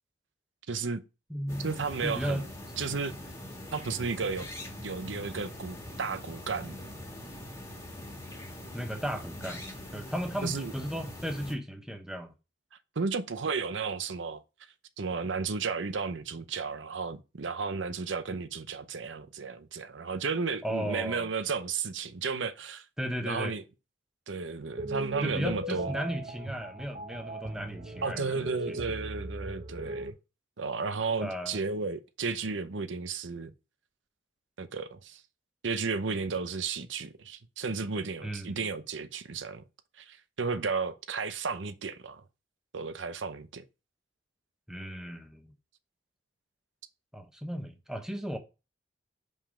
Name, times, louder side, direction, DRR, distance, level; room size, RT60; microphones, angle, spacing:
voice 1, 0.7-1.0 1.6-2.5 2.8-3.1 3.7-4.5 4.8-6.9 10.4-10.7 13.0-14.4 15.0-22.8 23.2-23.6 24.3-25.9 28.0-30.1 30.6-33.5 34.6-35.2 35.6-39.6 40.0-42.2 42.7-43.6, right 4 dB, 85° right, 0.7 m, -33 dB
voice 2, 1.3-1.7 2.0-2.4 8.7-9.6 9.9-12.3 20.6-21.3 23.0-23.5 25.2-28.8 31.2-31.6 38.2-38.7 44.7-45.5 47.1-48.4, equal, 5° right, 0.9 m, -35 dB
sound 1, 1.5-11.5, left 1 dB, 15° left, 1.6 m, -43 dB
sound 2, 24.8-30.1, right 1 dB, 40° right, 0.7 m, -38 dB
5.5 x 5.4 x 5.0 m
head